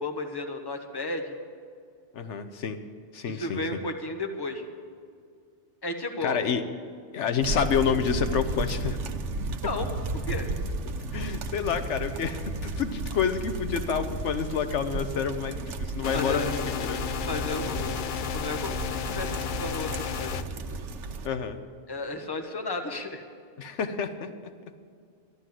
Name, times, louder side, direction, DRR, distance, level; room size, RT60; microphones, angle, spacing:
voice 1, 0.0-1.3 3.3-4.6 5.8-6.4 9.6-9.9 10.1-10.5 16.0-16.5 17.2-20.5 21.9-23.2, left 2 dB, 20° left, 4 dB, 1.1 m, -33 dB
voice 2, 2.1-2.8 3.1-3.8 6.2-6.6 7.1-9.0 11.1-17.0 21.2-21.6 23.6-24.3, left 7 dB, 80° left, 9 dB, 1.1 m, -28 dB
sound 1, 7.4-21.3, right 3 dB, 85° right, 1.1 m, -34 dB
sound 2, 16.0-20.4, left 9 dB, 60° left, 0.6 m, -33 dB
13.5 x 11.5 x 7.6 m, 2.2 s
omnidirectional pair, 1.2 m